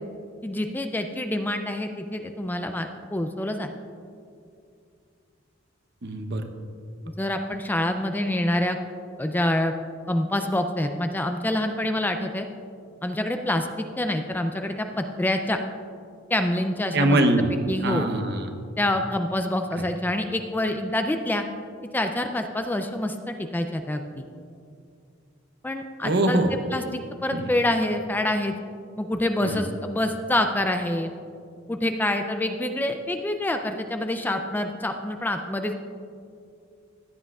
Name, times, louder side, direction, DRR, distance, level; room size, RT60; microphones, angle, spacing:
voice 1, 0.4-3.7 7.2-8.8 9.2-9.7 10.1-12.5 13.0-13.7 14.0-15.6 16.3-17.2 17.7-18.1 18.8-21.4 21.9-24.2 25.6-28.5 29.0-31.1 31.7-35.8, left 1 dB, 10° left, 6 dB, 0.4 m, -26 dB
voice 2, 6.0-6.5 16.9-17.5 17.8-18.5 26.0-26.5 27.3-27.5 29.4-29.6, right 1 dB, 55° right, 5 dB, 0.8 m, -23 dB
15.5 x 9.9 x 2.4 m, 2.4 s
head